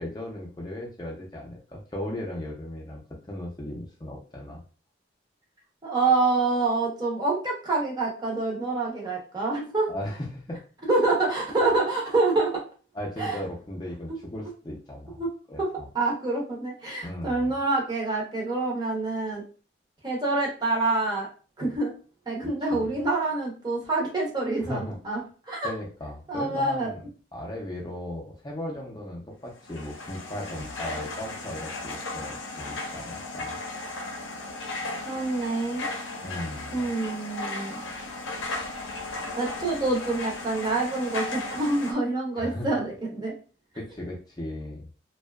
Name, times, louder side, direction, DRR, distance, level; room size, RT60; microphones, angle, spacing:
voice 1, 0.0-3.0 3.3-4.6 9.9-10.6 12.9-15.2 15.5-15.9 17.0-17.5 22.7-22.9 24.6-25.0 25.6-27.0 27.3-33.6 36.2-36.8 42.3-42.7 43.7-44.9, left 1 dB, 20° left, -2 dB, 0.5 m, -37 dB
voice 2, 5.8-9.9 10.8-12.5 13.2-13.4 14.1-14.2 15.2-15.3 15.6-15.7 15.9-19.4 20.0-21.3 21.6-21.9 22.3-25.2 25.5-25.7 26.3-26.9 35.1-35.9 36.7-37.8 39.4-43.3, right 3 dB, 20° right, -2 dB, 0.6 m, -26 dB
sound 1, 29.5-41.9, left 2 dB, 85° left, 0.6 m, -36 dB
2.6 x 2.2 x 2.2 m, 0.37 s
head